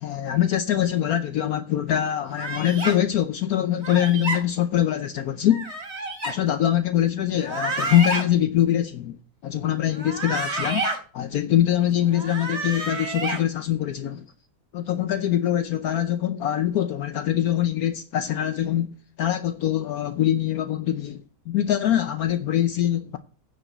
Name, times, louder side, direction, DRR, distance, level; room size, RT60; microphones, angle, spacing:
voice 1, 0.0-5.7 6.2-9.2 9.4-10.9 11.1-14.3 14.7-18.9 19.2-23.2, left 11 dB, 70° left, 1.1 m, -23 dB
sound 1, 2.3-3.0 3.8-4.4 5.5-6.3 7.4-8.2 9.9-11.0 12.1-13.4, right 2 dB, 40° right, 2.8 m, -29 dB
9.8 x 5.1 x 7.9 m
omnidirectional pair, 1.8 m